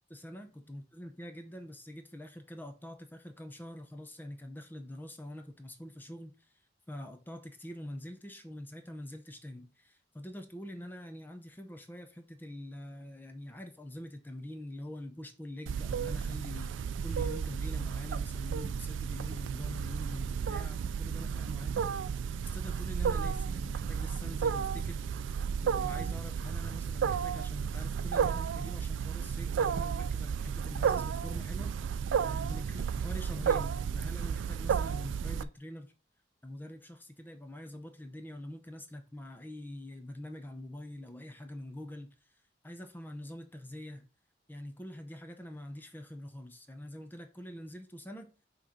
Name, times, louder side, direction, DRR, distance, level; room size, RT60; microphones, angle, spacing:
voice 1, 0.1-6.5 6.9-21.8 22.4-25.0 25.6-31.7 32.2-35.9 36.4-42.1 42.6-44.1 44.5-48.3, left 1 dB, 10° left, 0.6 m, -45 dB
Wild animals, 15.7-35.4, right 7 dB, 85° right, 0.3 m, -33 dB
6.1 x 3.0 x 5.0 m
head